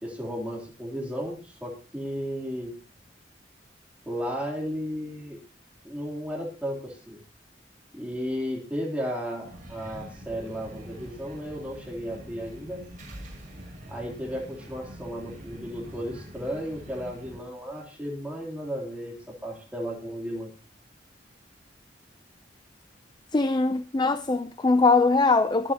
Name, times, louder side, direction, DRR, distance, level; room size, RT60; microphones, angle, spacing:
voice 1, 0.0-2.7 4.0-5.4 5.8-7.2 7.9-12.8 13.9-20.5, equal, 10° right, 3.2 m, -34 dB
sound 1, 9.4-17.4, equal, 45° right, 6.3 m, -44 dB
voice 2, 23.3-25.7, left 3 dB, 25° left, 0.5 m, -22 dB
23.5 x 8.7 x 2.9 m
head